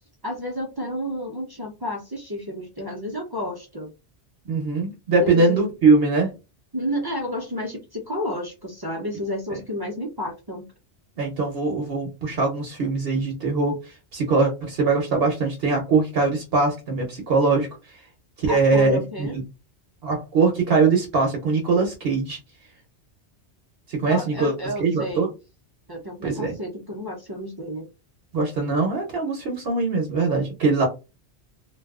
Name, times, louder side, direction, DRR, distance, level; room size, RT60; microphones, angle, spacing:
voice 1, 0.2-3.9 5.2-5.6 6.7-10.7 18.5-19.4 24.1-25.3 25.9-27.9, left 1 dB, 40° right, -1 dB, 0.3 m, -31 dB
voice 2, 4.5-6.3 9.5-9.6 11.2-18.0 18.4-19.4 20.0-22.4 23.9-24.5 24.8-25.3 26.2-26.6 28.3-30.9, right 3 dB, 65° right, 2 dB, 0.8 m, -22 dB
2.6 x 2.3 x 2.3 m, 0.28 s
omnidirectional pair, 1.2 m